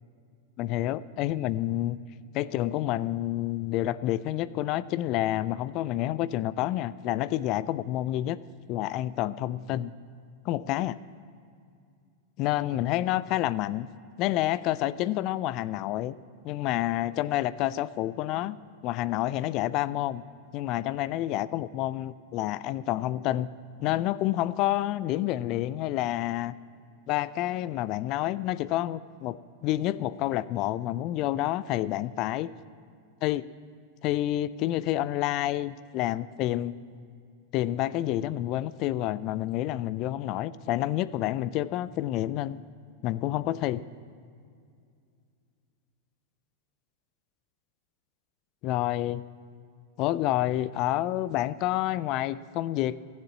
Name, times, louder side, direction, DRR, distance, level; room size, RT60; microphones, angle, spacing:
voice 1, 0.6-2.0 2.3-8.4 8.7-9.9 10.5-11.0 12.4-13.9 14.2-16.1 16.4-18.6 18.8-20.2 20.5-23.5 23.8-26.5 27.1-29.4 29.6-32.5 33.2-33.5 34.0-36.7 37.5-42.6 43.0-43.8 48.6-49.2 50.0-53.0, left 14 dB, 40° left, 18 dB, 0.3 m, -28 dB
14.5 x 7.4 x 7.3 m, 2.3 s
figure-of-eight pair, 95°, 0 cm